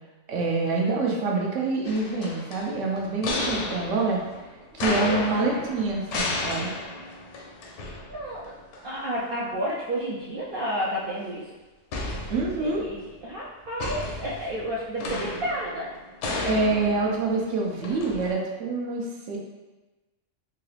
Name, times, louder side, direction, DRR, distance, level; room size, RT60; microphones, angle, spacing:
voice 1, 0.3-4.2 4.7-6.7 12.3-12.9 16.5-19.4, right 3 dB, 75° right, -1 dB, 1.0 m, -26 dB
sound 1, 1.8-8.5 8.7-8.8 11.9-13.0 13.8-18.3, left 2 dB, 70° left, 0.9 m, -33 dB
voice 2, 4.9-5.2 5.5-5.6 8.1-8.5 8.8-11.4 12.6-15.9, right 1 dB, 60° right, -6 dB, 0.6 m, -31 dB
3.7 x 2.3 x 3.2 m, 1.1 s
omnidirectional pair, 1.3 m